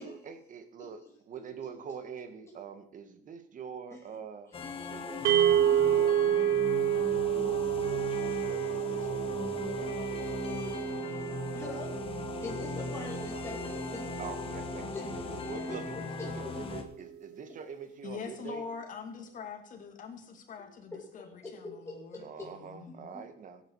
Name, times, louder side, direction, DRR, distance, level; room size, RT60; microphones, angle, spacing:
voice 1, 0.0-1.0 1.3-4.5 4.9-6.2 7.0-11.0 14.2-18.6 22.2-23.6, right 6 dB, 50° right, 1.7 m, -45 dB
sound 1, 4.5-16.8, left 4 dB, 30° left, 1.8 m, -38 dB
sound 2, 5.2-15.5, right 10 dB, 75° right, 0.6 m, -30 dB
voice 2, 11.5-12.0 12.4-14.1 14.9-15.4 16.3-16.5 20.9-22.5 22.9-23.0, left 2 dB, 15° left, 2.6 m, -43 dB
voice 3, 18.0-23.2, left 5 dB, 50° left, 2.5 m, -44 dB
16.0 x 9.1 x 4.8 m
cardioid pair, 110°, 17 cm